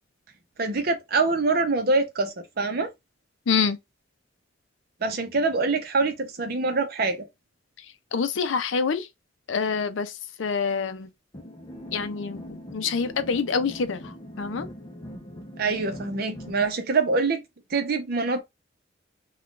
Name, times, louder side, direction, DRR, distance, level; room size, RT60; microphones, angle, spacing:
voice 1, 0.6-2.9 5.0-7.3 15.6-17.4 17.7-18.4, right 3 dB, 50° right, 0.7 m, -25 dB
voice 2, 3.5-3.8 7.8-7.9 8.1-9.1 9.5-11.1 11.9-14.7, left 5 dB, 75° left, 0.5 m, -27 dB
sound 1, 11.3-16.7, equal, 25° left, 0.6 m, -41 dB
2.4 x 2.3 x 3.7 m
head